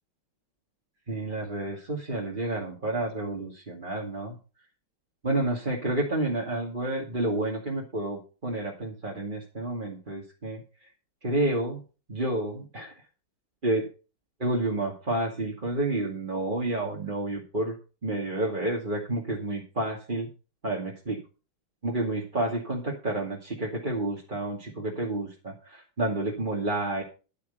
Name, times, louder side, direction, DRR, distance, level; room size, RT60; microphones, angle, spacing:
voice 1, 1.1-4.4 5.2-10.9 11.2-11.8 12.1-12.9 13.6-13.9 14.4-17.8 18.0-20.3 20.6-21.2 21.8-27.0, right 2 dB, 25° right, -3 dB, 2.3 m, -30 dB
11.5 x 8.5 x 5.5 m, 0.33 s
omnidirectional pair, 2.3 m